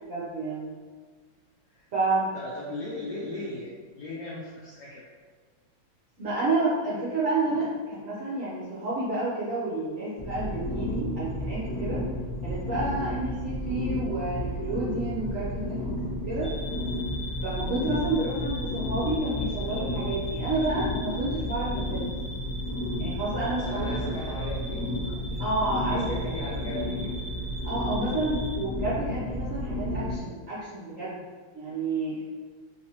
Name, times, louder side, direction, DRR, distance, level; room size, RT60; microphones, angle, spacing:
voice 1, 0.0-0.7 1.9-2.3 6.2-12.0 12.4-15.8 16.3-16.5 17.4-22.0 23.0-23.9 25.4-26.2 26.5-26.6 27.6-31.2 31.5-32.2, right 2 dB, 60° right, -9 dB, 0.8 m, -30 dB
voice 2, 2.3-5.1 23.4-24.8 25.3-25.4 25.9-27.2, left 1 dB, 90° left, -4 dB, 0.9 m, -38 dB
sound 1, 10.2-30.2, left 1 dB, 35° left, 0.5 m, -32 dB
sound 2, 16.4-28.6, left 1 dB, 5° left, 1.0 m, -41 dB
3.4 x 3.1 x 2.8 m, 1.5 s
omnidirectional pair, 2.4 m